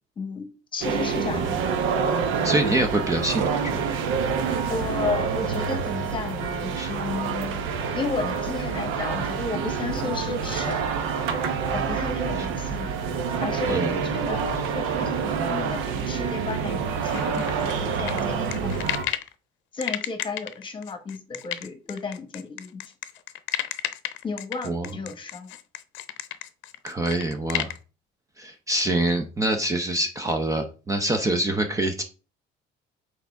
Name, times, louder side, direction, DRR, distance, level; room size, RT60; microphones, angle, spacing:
voice 1, 0.2-1.5 4.7-7.6 7.9-10.9 11.7-12.9 13.4-18.8 19.7-22.8 24.2-25.6, left 4 dB, 25° left, 1.2 m, -33 dB
sound 1, 0.8-19.1, right 6 dB, 75° right, 1.0 m, -27 dB
voice 2, 2.4-3.8 6.7-6.9 13.7-13.9 24.6-25.0 26.8-27.7 28.4-32.0, right 1 dB, 15° right, 0.6 m, -25 dB
sound 2, 17.1-19.3 19.8-27.8, left 14 dB, 70° left, 0.7 m, -32 dB
6.6 x 4.6 x 3.5 m
cardioid pair, 145°, 20 cm